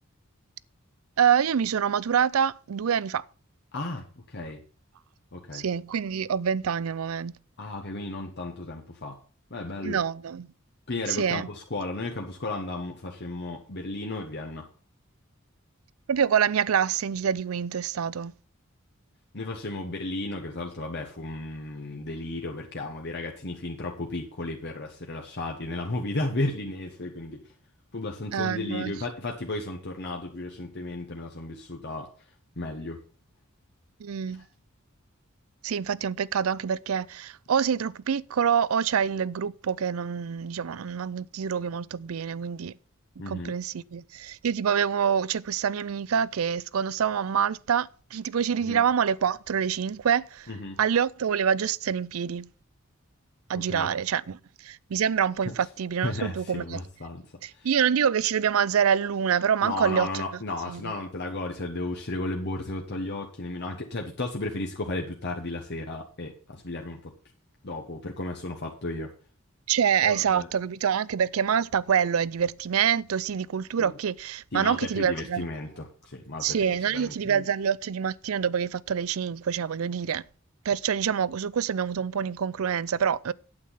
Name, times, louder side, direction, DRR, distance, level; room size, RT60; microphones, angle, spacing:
voice 1, 1.2-3.2 5.5-7.3 9.8-10.5 11.1-11.5 16.1-18.3 28.3-28.9 34.0-34.4 35.6-42.7 43.3-50.5 50.8-52.5 53.5-56.8 57.4-60.2 60.7-60.9 69.7-75.5 76.4-80.2 80.6-83.3, right 7 dB, 85° right, 0.5 m, -26 dB
voice 2, 3.7-4.6 5.3-5.6 7.6-9.2 9.5-10.0 10.9-14.7 19.3-27.4 27.9-32.1 32.6-33.0 43.2-43.5 48.7-48.8 50.5-50.8 53.7-53.9 55.4-55.5 56.0-57.2 57.5-57.7 59.6-67.1 67.6-69.1 70.0-70.5 73.8-73.9 74.5-76.6 76.9-77.4, left 2 dB, 55° left, 1.2 m, -34 dB
8.7 x 8.6 x 5.6 m
head